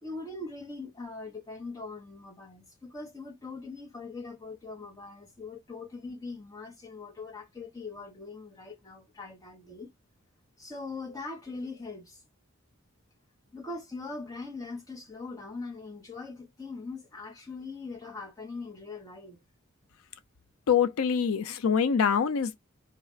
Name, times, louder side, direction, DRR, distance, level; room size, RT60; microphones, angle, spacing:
voice 1, 0.0-9.9 10.6-12.2 13.5-19.4, left 3 dB, 15° left, 1.0 m, -41 dB
voice 2, 20.7-22.6, left 7 dB, 85° left, 0.4 m, -25 dB
3.5 x 2.4 x 4.3 m
head